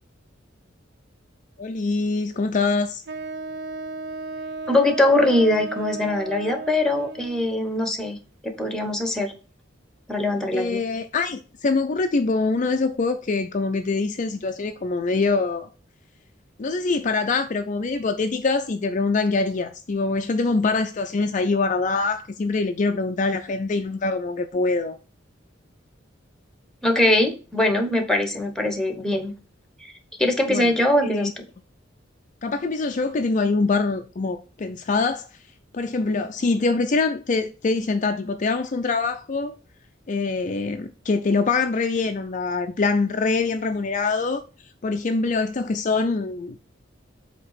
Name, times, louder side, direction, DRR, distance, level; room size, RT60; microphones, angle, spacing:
voice 1, 1.6-3.0 10.5-15.7 16.6-25.0 30.5-30.7 31.0-31.3 32.4-35.3 35.7-39.5 40.1-44.4 44.8-46.6, left 3 dB, 40° left, 0.5 m, -24 dB
Wind instrument woodwind instrument, 3.1-7.5, right 3 dB, 60° right, 0.6 m, -33 dB
voice 2, 4.7-8.2 8.4-9.3 10.1-10.8 26.8-29.3 29.8-29.9 30.2-31.3, left 1 dB, 5° left, 1.2 m, -22 dB
7.7 x 2.9 x 5.7 m
head